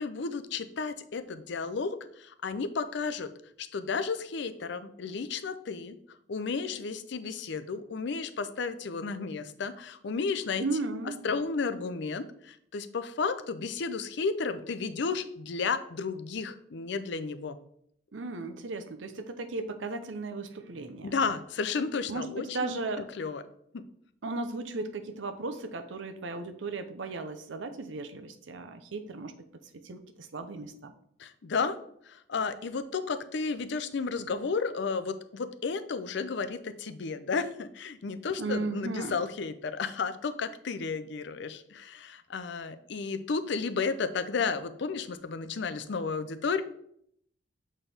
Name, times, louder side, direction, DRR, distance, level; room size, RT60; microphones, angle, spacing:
voice 1, 0.0-3.3 3.6-6.0 6.3-10.6 11.2-17.6 21.0-22.8 23.2-23.4 23.7-23.8 31.2-31.8 32.0-46.6, left 4 dB, 65° left, 12 dB, 0.5 m, -33 dB
voice 2, 10.6-11.2 18.1-21.1 22.1-23.1 24.2-29.3 29.8-30.9 38.4-39.2, right 3 dB, 75° right, 8 dB, 0.7 m, -35 dB
7.2 x 4.4 x 3.4 m, 0.69 s
head